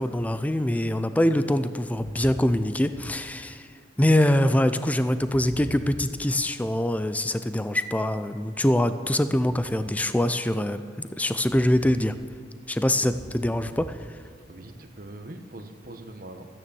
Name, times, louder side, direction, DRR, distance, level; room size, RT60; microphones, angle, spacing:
voice 1, 0.0-3.7 4.0-12.1 12.7-14.0, left 1 dB, 10° left, 11 dB, 0.4 m, -24 dB
voice 2, 2.0-2.4 2.9-3.2 5.3-6.0 13.1-14.0 14.5-16.5, right 1 dB, 50° right, 7 dB, 1.1 m, -42 dB
14.0 x 9.6 x 7.0 m, 2.3 s
head